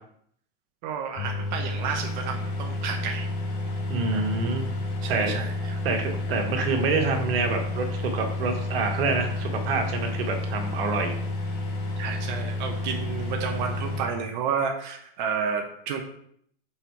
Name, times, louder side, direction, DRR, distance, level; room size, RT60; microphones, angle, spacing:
voice 1, 0.8-3.3 4.1-4.2 5.0-5.7 12.0-16.0, right 6 dB, 55° right, 3 dB, 0.9 m, -31 dB
sound 1, 1.2-14.0, left 2 dB, 60° left, 2.3 m, -30 dB
voice 2, 3.9-4.7 5.1-5.3 5.8-11.1, right 4 dB, 80° right, 3 dB, 1.6 m, -27 dB
6.5 x 4.3 x 4.5 m, 0.66 s
supercardioid pair, 160°, 29 cm